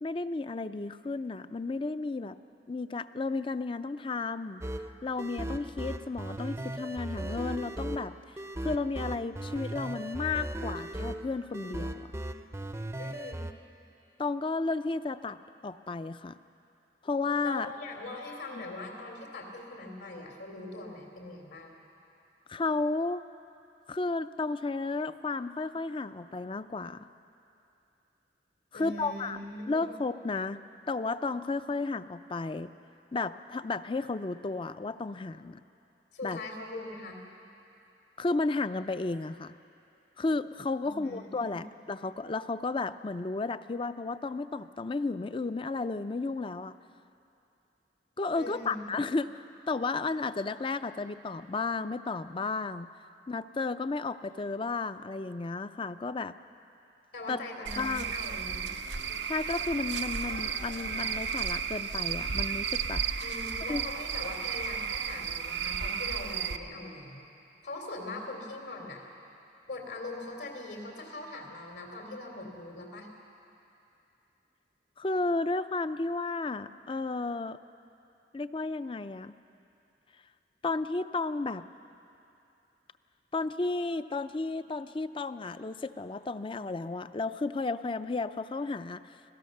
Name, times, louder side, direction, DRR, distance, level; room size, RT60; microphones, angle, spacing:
voice 1, 0.0-2.4 2.7-4.6 5.0-8.1 8.6-12.1 14.2-16.4 17.0-17.7 18.5-18.6 22.5-23.2 23.9-27.1 28.7-29.4 29.7-30.6 30.9-32.7 33.1-35.6 36.2-36.4 38.2-39.6 40.2-46.7 48.2-52.9 53.3-56.3 57.3-57.4 57.8-58.1 59.3-63.0 63.7-63.8 75.0-77.6 78.3-79.3 80.6-81.7 83.3-89.2, left 3 dB, 30° left, 13 dB, 0.4 m, -33 dB
sound 1, 4.6-13.5, right 1 dB, 15° right, 0.6 m, -37 dB
voice 2, 13.0-13.5 17.4-21.7 28.7-29.9 36.1-37.2 40.8-41.6 48.3-48.8 57.1-58.7 63.2-67.3 67.6-69.0 69.7-73.1, left 2 dB, 80° left, 1 dB, 3.3 m, -41 dB
Cricket / Frog, 57.7-66.6, right 7 dB, 85° right, 0.8 m, -33 dB
sound 2, 58.4-65.2, left 3 dB, 60° left, 1.3 m, -52 dB
25.5 x 17.0 x 6.6 m, 2.8 s
head